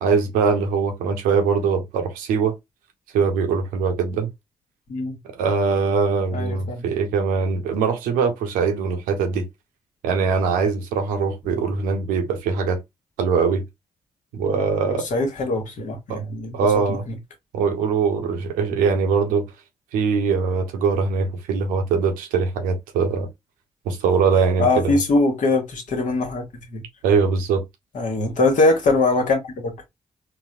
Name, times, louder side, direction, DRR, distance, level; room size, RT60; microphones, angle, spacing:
voice 1, 0.0-2.5 3.1-4.3 5.4-9.5 10.0-12.8 13.2-13.6 14.3-15.0 16.1-16.2 16.5-17.0 17.5-19.5 19.9-23.3 23.9-24.9 27.0-27.6, right 5 dB, 85° right, 0.7 m, -22 dB
voice 2, 6.3-7.0 11.5-11.6 14.4-17.2 24.6-26.8 27.9-29.7, left 2 dB, 65° left, 1.1 m, -22 dB
4.0 x 2.0 x 2.4 m
hypercardioid pair, 40°, 14 cm